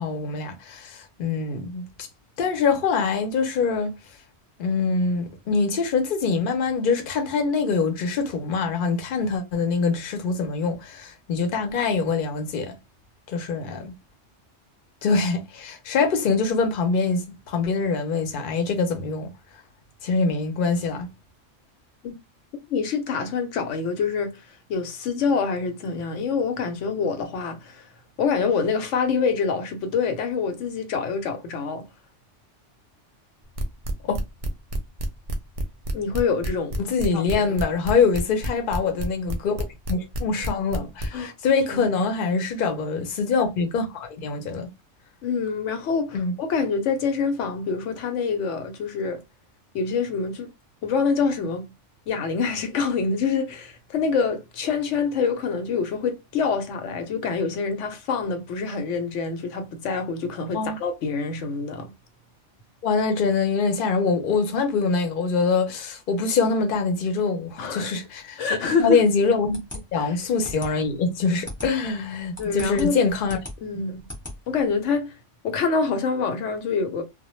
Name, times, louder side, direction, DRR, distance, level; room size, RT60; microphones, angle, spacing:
voice 1, 0.0-2.1 2.4-3.9 4.6-12.8 13.3-13.9 15.0-19.3 20.0-21.1 34.0-34.2 36.8-44.7 46.1-46.3 60.5-60.8 62.8-68.4 68.8-73.4, left 4 dB, 55° left, 0.7 m, -24 dB
voice 2, 22.7-24.4 24.7-27.9 28.2-31.9 35.9-37.2 37.5-37.6 41.1-41.3 41.7-42.0 45.2-49.2 49.7-50.5 50.8-51.7 52.1-61.9 67.6-67.9 68.4-69.0 69.9-70.2 72.4-73.0 73.6-74.0 74.5-75.1 75.4-77.0, left 5 dB, 80° left, 0.9 m, -26 dB
sound 1, 33.6-41.1, right 1 dB, 55° right, 0.4 m, -28 dB
sound 2, 69.5-74.8, left 1 dB, 10° left, 0.8 m, -39 dB
2.1 x 2.1 x 3.0 m
omnidirectional pair, 1.2 m